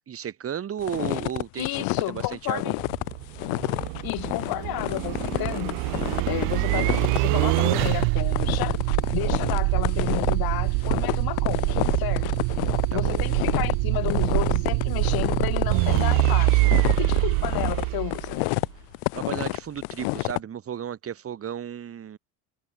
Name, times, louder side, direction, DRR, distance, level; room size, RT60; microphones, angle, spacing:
voice 1, 0.0-2.7 12.9-13.2 19.1-22.2, right 9 dB, 30° right, 3.2 m, -34 dB
sound 1, 0.8-20.4, left 40 dB or more, 85° left, 0.8 m, -29 dB
voice 2, 1.6-2.7 4.0-5.8 6.3-8.8 9.1-12.3 12.9-18.4, left 17 dB, 55° left, 1.9 m, -32 dB
sound 2, 2.7-18.7, right 31 dB, 80° right, 1.2 m, -25 dB
cardioid pair, 145°, 43 cm